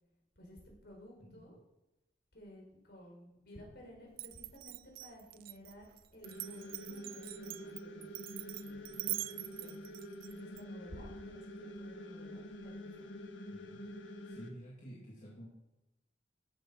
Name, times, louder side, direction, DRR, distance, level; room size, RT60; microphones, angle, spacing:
voice 1, 0.4-1.6 2.3-9.8 10.3-12.9, equal, 60° left, -1 dB, 4.6 m, -55 dB
voice 2, 1.2-1.5 13.5-13.8 14.3-15.5, equal, 40° left, -4 dB, 2.2 m, -51 dB
Glass, 4.1-10.6, right 18 dB, 50° right, 0.3 m, -44 dB
sound 1, 6.2-14.5, equal, 85° left, 1.7 m, -47 dB
13.5 x 8.6 x 6.2 m, 0.97 s
head